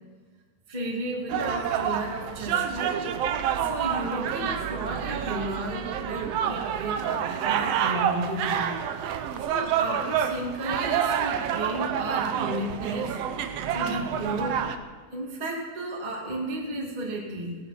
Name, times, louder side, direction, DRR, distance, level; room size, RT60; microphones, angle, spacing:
voice 1, 0.7-3.0 3.6-8.7 9.4-13.2 13.7-14.6 15.1-17.6, right 1 dB, 15° right, -3 dB, 1.9 m, -33 dB
sound 1, 1.3-14.8, right 8 dB, 75° right, 1.5 m, -28 dB
17.5 x 11.0 x 5.9 m, 1.5 s
omnidirectional pair, 3.8 m